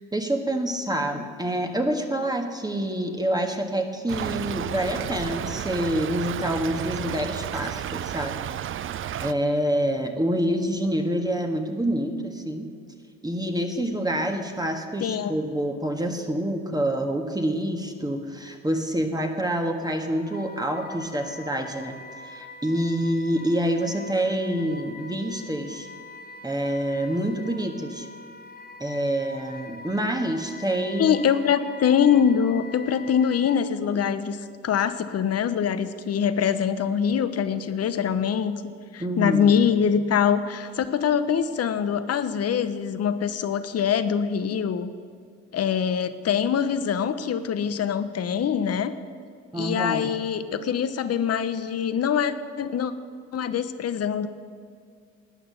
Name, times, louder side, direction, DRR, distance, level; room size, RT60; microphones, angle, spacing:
voice 1, 0.1-8.4 9.2-12.7 13.2-21.9 22.2-25.9 26.4-28.1 28.8-31.2 39.0-39.6 49.5-50.1, right 1 dB, 10° right, 4 dB, 1.5 m, -27 dB
Stream / Trickle dribble, 4.1-9.3, right 10 dB, 40° right, 0.5 m, -32 dB
voice 2, 15.0-15.3 31.0-38.6 38.9-44.9 45.5-49.0 49.6-52.9 53.3-54.3, left 7 dB, 50° left, 12 dB, 1.0 m, -24 dB
Wind instrument woodwind instrument, 19.8-33.6, left 3 dB, 30° left, 1.7 m, -44 dB
13.0 x 9.3 x 6.8 m, 2.2 s
supercardioid pair, 65°, 32 cm